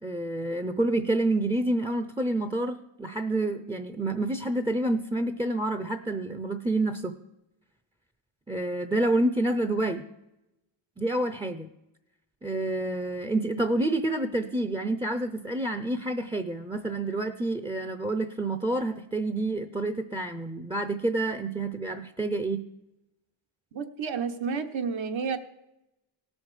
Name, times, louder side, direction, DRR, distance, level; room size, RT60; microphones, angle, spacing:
voice 1, 0.0-7.1 8.5-10.0 11.0-11.7 12.4-22.6, right 2 dB, 10° right, 8 dB, 0.5 m, -28 dB
voice 2, 23.7-25.4, right 5 dB, 65° right, 7 dB, 1.2 m, -30 dB
17.5 x 6.3 x 4.8 m, 0.91 s
cardioid pair, 90°, 49 cm